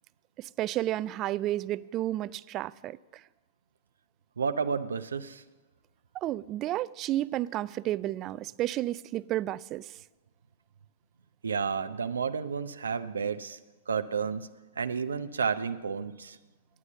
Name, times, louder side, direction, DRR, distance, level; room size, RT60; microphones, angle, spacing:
voice 1, 0.4-3.0 6.1-9.9, right 14 dB, 35° right, 0.3 m, -31 dB
voice 2, 4.4-5.4 11.4-13.6 13.9-14.5 14.8-16.4, right 6 dB, 90° right, 0.6 m, -31 dB
9.8 x 9.6 x 7.3 m
hypercardioid pair, 125°, 0 cm